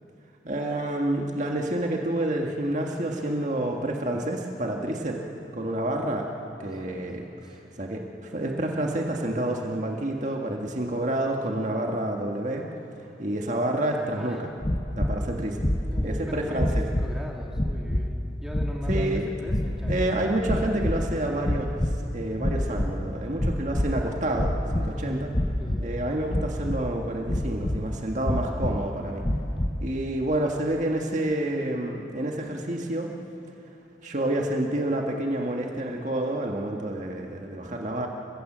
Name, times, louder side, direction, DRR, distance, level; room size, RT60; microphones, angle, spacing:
voice 1, 0.5-5.2 5.5-6.3 6.6-12.7 13.2-14.4 15.0-15.6 16.0-16.9 18.9-19.3 19.9-21.8 22.1-25.3 25.8-29.2 29.8-33.1 34.0-38.1, right 1 dB, 45° right, 1 dB, 1.7 m, -28 dB
voice 2, 6.6-7.5 14.2-14.5 15.9-18.1 18.4-20.0 24.8-25.2 25.6-25.9, equal, 5° right, -1 dB, 2.5 m, -38 dB
sound 1, 14.6-15.2 15.6-16.2 16.5-17.2 17.5-18.1 18.5-19.0 19.5-20.1 20.4-21.1 21.4-22.0 22.4-22.9 23.3-24.0 24.3-24.9 25.3-25.9 26.3-26.9 27.2-27.8 28.2-28.8 29.2-29.8, left 1 dB, 30° left, 1.1 m, -27 dB
29.0 x 16.0 x 7.5 m, 3.0 s
head